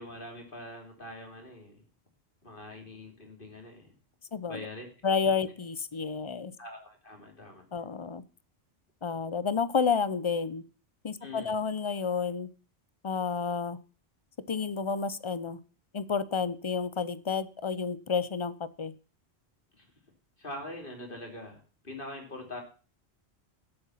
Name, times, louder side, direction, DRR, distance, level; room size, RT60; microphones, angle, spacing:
voice 1, 0.0-1.8 2.4-3.9 4.5-4.9 6.6-7.7 11.2-11.6 19.7-19.9 20.4-22.6, left 1 dB, 50° left, 3 dB, 3.2 m, -43 dB
voice 2, 5.0-6.5 7.7-8.2 9.0-10.6 11.0-12.5 13.0-13.8 14.5-15.6 15.9-18.9, left 5 dB, 35° left, 17 dB, 0.6 m, -30 dB
12.0 x 8.0 x 5.7 m, 0.37 s
omnidirectional pair, 1.1 m